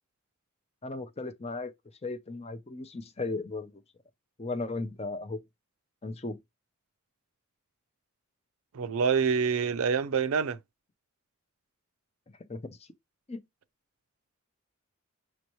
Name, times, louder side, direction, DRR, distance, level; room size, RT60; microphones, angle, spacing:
voice 1, 0.8-1.7 2.0-3.8 4.4-5.4 6.0-6.4 12.4-12.9 13.3-13.4, left 3 dB, 30° left, 0.5 m, -36 dB
voice 2, 8.7-10.6, right 6 dB, 75° right, 0.5 m, -26 dB
6.1 x 2.8 x 3.0 m
head